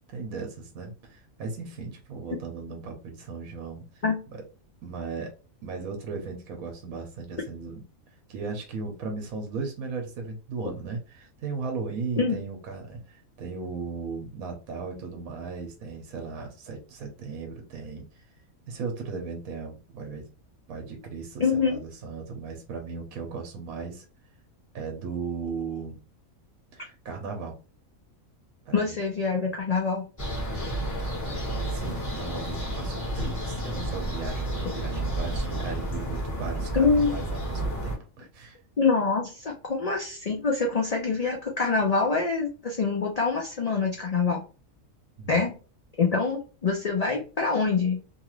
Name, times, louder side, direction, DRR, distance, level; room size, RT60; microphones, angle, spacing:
voice 1, 0.1-4.0 4.8-5.3 5.6-7.8 8.3-18.2 18.7-20.3 20.7-24.1 24.7-26.0 26.7-27.5 28.7-29.0 31.7-38.6 45.2-45.4, right 4 dB, 85° right, 3 dB, 1.1 m, -36 dB
voice 2, 21.4-21.8 28.7-30.1 36.7-37.2 38.8-44.4 45.3-45.5 46.0-48.0, left 4 dB, 80° left, -1 dB, 0.3 m, -25 dB
sound 1, 30.2-38.0, right 1 dB, 15° left, 0.8 m, -31 dB
2.8 x 2.4 x 3.0 m, 0.35 s
omnidirectional pair, 1.4 m